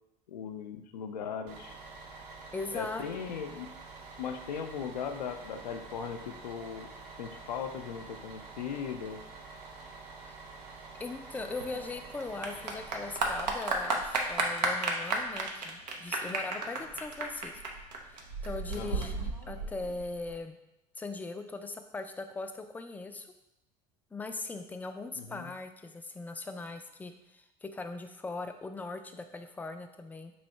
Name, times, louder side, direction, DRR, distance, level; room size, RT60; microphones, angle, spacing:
voice 1, 0.3-1.8 2.7-3.7 4.2-9.2 18.7-19.1 25.2-25.5, left 7 dB, 90° left, 6 dB, 0.4 m, -38 dB
Bus, 1.5-13.3, right 3 dB, 55° right, 0.8 m, -48 dB
voice 2, 2.5-3.0 10.3-10.4 11.0-17.5 18.4-20.6 21.0-23.3 24.1-30.3, left 3 dB, 10° left, 6 dB, 0.3 m, -40 dB
Clapping / Applause, 11.3-20.3, right 3 dB, 90° right, 0.6 m, -33 dB
3.1 x 2.7 x 4.3 m, 0.87 s
hypercardioid pair, 80°, 21 cm